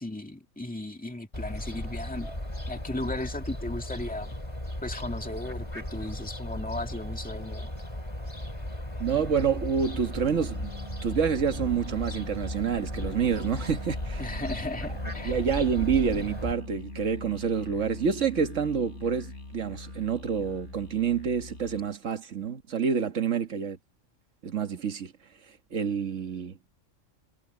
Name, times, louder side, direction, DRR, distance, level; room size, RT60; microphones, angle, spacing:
voice 1, 0.0-2.3 2.7-4.3 4.8-7.7 14.2-15.4, left 2 dB, 5° left, 2.0 m, -36 dB
Fowl, 1.3-16.5, left 1 dB, 25° left, 4.1 m, -36 dB
voice 2, 9.0-10.7 11.0-14.2 15.2-23.8 24.4-25.1 25.7-26.8, right 7 dB, 70° right, 1.9 m, -28 dB
Musical instrument, 10.2-21.9, left 2 dB, 65° left, 4.1 m, -42 dB
omnidirectional pair, 1.3 m